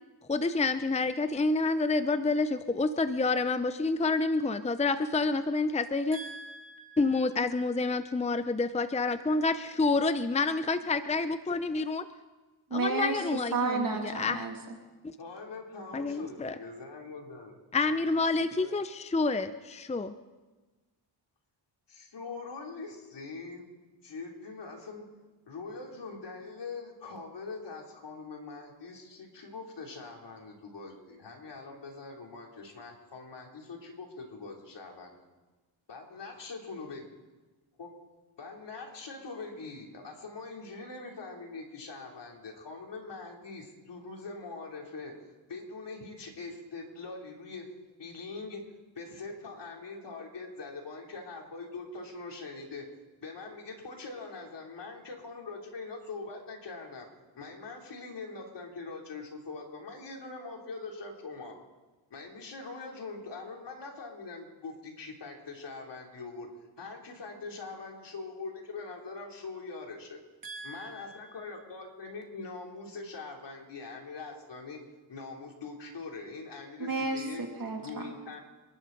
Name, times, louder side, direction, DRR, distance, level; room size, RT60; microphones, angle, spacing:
voice 1, 0.3-6.2 7.0-12.1 12.7-14.4 15.0-15.1 15.9-16.6 17.7-20.1, left 3 dB, 15° left, 11 dB, 0.7 m, -28 dB
voice 2, 6.1-7.0 12.7-13.2 13.5-14.5 70.4-71.3 76.8-77.8, right 3 dB, 45° right, 2 dB, 2.5 m, -33 dB
voice 3, 15.2-17.6 18.6-18.8 21.9-23.7 24.0-25.1 25.5-35.2 35.9-37.1 37.8-38.0 38.4-47.7 48.0-48.7 49.0-52.9 53.2-57.1 57.3-61.6 62.1-66.5 66.8-70.2 70.6-74.8 75.1-77.4 77.8-78.4, left 3 dB, 65° left, 0 dB, 3.6 m, -43 dB
26.5 x 12.0 x 4.1 m, 1.2 s
cardioid pair, 65°, 46 cm